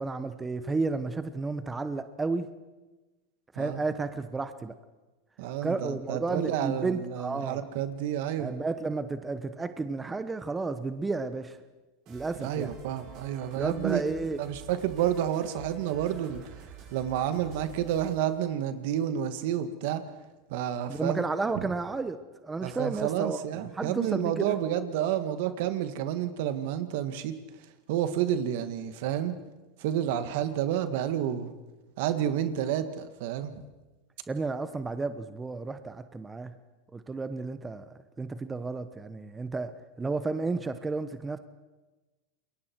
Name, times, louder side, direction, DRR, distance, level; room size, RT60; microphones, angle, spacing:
voice 1, 0.0-2.5 3.5-4.7 5.6-7.6 8.4-11.6 12.1-12.7 13.5-14.4 20.9-24.6 34.3-36.5 36.9-37.8 38.2-39.7 40.0-41.4, right 3 dB, 15° right, 10 dB, 1.1 m, -32 dB
voice 2, 5.4-8.5 12.4-14.0 14.4-16.4 16.9-20.0 20.5-21.2 21.6-21.7 22.6-27.4 27.9-29.3 29.8-31.5 32.0-33.6, right 10 dB, 65° right, 10 dB, 1.8 m, -30 dB
sound 1, 12.1-18.3, right 6 dB, 50° right, 7.4 m, -49 dB
28.0 x 22.0 x 4.6 m, 1.2 s
supercardioid pair, 120°, 0 cm